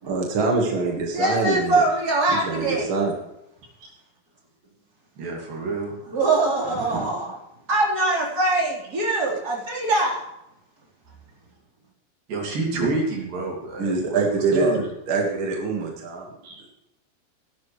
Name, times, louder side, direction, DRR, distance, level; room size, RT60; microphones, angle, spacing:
voice 1, 0.1-1.8 2.4-3.1 6.9-7.1 12.7-12.9 13.8-14.7 15.1-16.3, right 3 dB, 45° right, 0 dB, 1.8 m, -24 dB
voice 2, 1.1-2.9 6.1-7.4 7.7-10.2, right 2 dB, 25° right, -4 dB, 4.2 m, -23 dB
voice 3, 5.2-6.1 12.3-14.2 14.5-14.9 16.4-16.6, right 3 dB, 60° right, -1 dB, 4.3 m, -28 dB
17.5 x 11.5 x 3.3 m, 0.87 s
omnidirectional pair, 4.6 m